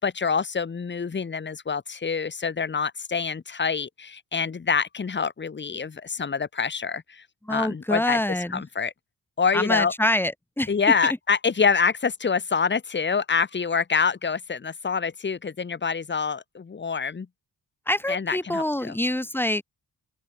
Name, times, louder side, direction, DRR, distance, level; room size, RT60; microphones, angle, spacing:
voice 1, 0.0-7.2 7.5-8.9 9.4-9.9 10.7-17.3 18.1-19.0, left 5 dB, 30° left, 3.3 m, -26 dB
voice 2, 7.5-8.6 9.5-10.7 17.9-19.6, left 1 dB, 5° left, 4.3 m, -26 dB
open air
wide cardioid pair, 175°, 37 cm